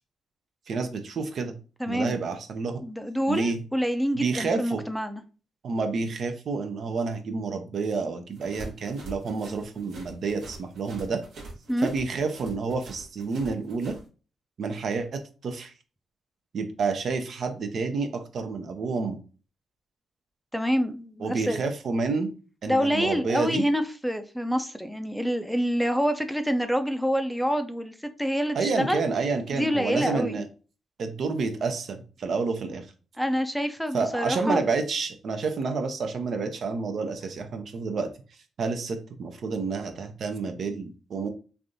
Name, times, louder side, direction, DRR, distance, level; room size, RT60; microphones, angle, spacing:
voice 1, 0.7-1.5 1.9-2.8 3.3-3.6 4.1-4.8 5.6-11.2 11.8-14.0 14.6-15.7 16.5-19.2 21.2-22.3 22.6-23.6 28.5-30.5 31.0-32.9 33.9-38.1 38.6-41.3, right 4 dB, 65° right, 0.6 m, -29 dB
voice 2, 1.8-2.2 2.8-5.2 11.7-11.9 20.5-21.6 22.7-29.0 29.5-30.4 33.2-34.6, equal, ahead, 0.4 m, -27 dB
sound 1, 8.3-14.0, right 2 dB, 80° right, 1.0 m, -44 dB
3.3 x 2.5 x 2.6 m
cardioid pair, 65°, 0 cm